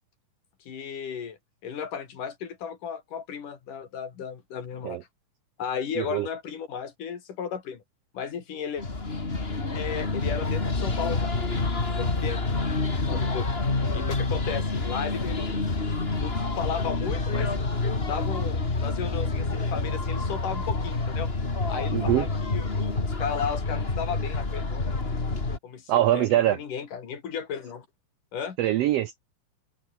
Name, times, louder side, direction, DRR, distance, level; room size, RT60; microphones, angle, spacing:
voice 1, 0.7-1.4 1.6-5.1 5.6-7.8 8.1-8.8 9.7-11.3 11.9-12.4 13.1-13.5 13.8-15.6 16.0-17.5 18.0-21.3 21.7-24.9 25.6-27.9 28.3-28.6, left 7 dB, 70° left, 4.4 m, -34 dB
voice 2, 6.0-6.3 21.9-22.3 25.9-26.6 28.6-29.2, right 13 dB, 85° right, 1.4 m, -23 dB
sound 1, 8.8-25.6, left 3 dB, 20° left, 2.4 m, -28 dB
open air
omnidirectional pair, 3.8 m